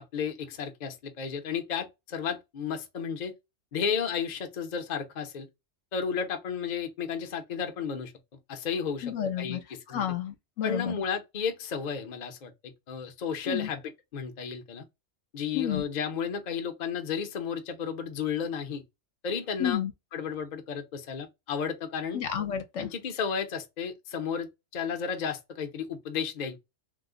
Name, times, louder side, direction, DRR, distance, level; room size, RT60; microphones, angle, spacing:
voice 1, 0.1-3.3 3.7-5.5 5.9-8.1 8.5-10.1 10.6-13.8 14.1-14.8 15.3-18.8 19.2-19.8 20.1-22.2 22.8-26.6, left 6 dB, 45° left, 0.6 m, -33 dB
voice 2, 9.0-9.6 9.9-11.0 13.5-13.7 15.5-15.8 19.6-19.9 22.1-22.9, left 9 dB, 70° left, 0.9 m, -31 dB
3.0 x 2.1 x 3.6 m
omnidirectional pair, 1.4 m